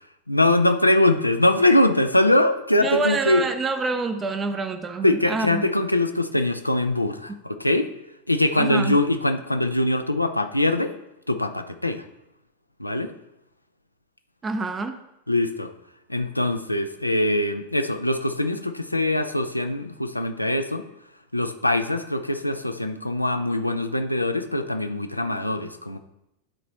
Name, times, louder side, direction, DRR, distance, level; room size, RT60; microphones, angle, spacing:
voice 1, 0.3-3.5 5.0-7.9 8.3-10.9 11.3-12.0 12.8-13.1 15.3-15.7 16.1-20.9 21.3-26.0, left 1 dB, 85° left, 8 dB, 0.6 m, -22 dB
voice 2, 2.8-5.6 8.5-9.0 14.4-15.0, right 3 dB, 20° right, 7 dB, 0.7 m, -27 dB
12.0 x 4.2 x 4.1 m, 0.88 s
figure-of-eight pair, 90°, 0 cm